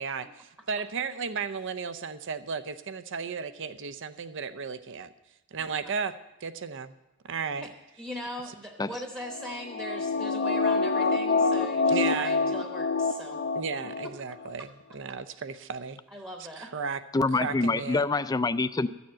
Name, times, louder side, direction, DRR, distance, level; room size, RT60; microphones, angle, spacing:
voice 1, 0.0-5.1 5.5-6.2 6.4-6.9 7.3-7.7 11.9-12.4 13.6-16.0 16.6-17.0 17.4-18.0, right 5 dB, 65° right, 12 dB, 0.6 m, -34 dB
voice 2, 5.6-5.9 8.0-13.5 16.1-16.7, equal, 10° right, 3 dB, 1.0 m, -40 dB
sound 1, 9.3-14.1 14.4-14.5, left 4 dB, 50° left, 0.7 m, -27 dB
voice 3, 17.1-18.9, left 3 dB, 20° left, 13 dB, 0.4 m, -26 dB
13.0 x 7.1 x 7.6 m, 0.97 s
head